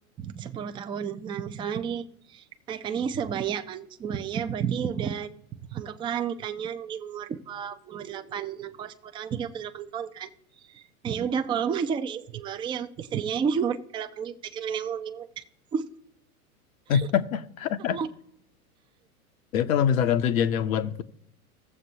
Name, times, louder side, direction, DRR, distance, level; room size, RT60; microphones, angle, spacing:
voice 1, 0.2-5.3 5.7-10.3 10.7-15.4 15.7-15.9 16.9-17.1 17.9-18.1, right 7 dB, 10° right, 0.4 m, -31 dB
voice 2, 16.9-18.0 19.5-21.0, left 8 dB, 65° left, 0.9 m, -24 dB
18.0 x 7.3 x 2.8 m
hypercardioid pair, 90°, 44 cm